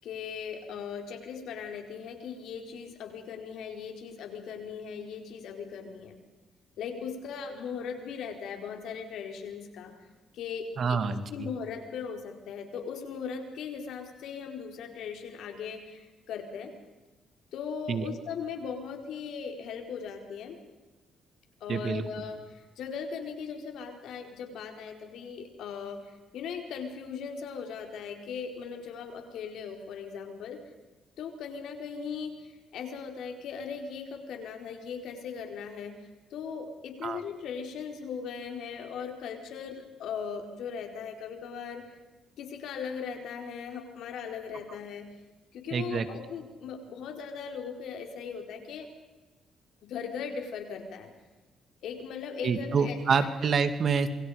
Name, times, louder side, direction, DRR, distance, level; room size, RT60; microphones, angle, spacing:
voice 1, 0.0-6.1 6.8-9.9 10.3-11.0 11.3-16.7 17.5-20.6 21.6-30.6 31.2-42.0 42.4-45.1 45.5-48.9 49.8-51.1 51.8-53.3, left 6 dB, 80° left, 4 dB, 4.5 m, -38 dB
voice 2, 10.8-11.5 17.9-18.0 21.7-22.0 37.0-37.2 45.7-46.0 52.4-54.1, right 5 dB, 50° right, 10 dB, 2.4 m, -27 dB
27.0 x 24.0 x 5.2 m, 1.1 s
cardioid pair, 90°, 0 cm